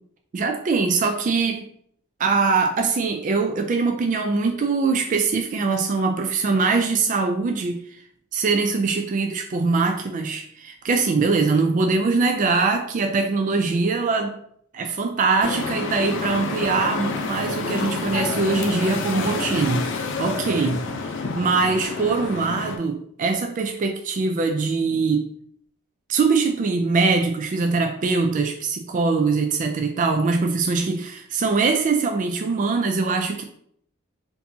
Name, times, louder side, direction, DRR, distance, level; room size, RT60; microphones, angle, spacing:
voice 1, 0.3-1.7 2.2-8.0 8.3-14.3 14.7-20.8 21.3-25.3 26.1-33.4, right 4 dB, 40° right, 4 dB, 0.3 m, -22 dB
sound 1, 15.4-22.8, left 4 dB, 65° left, 0.5 m, -28 dB
4.4 x 2.7 x 2.7 m, 0.66 s
head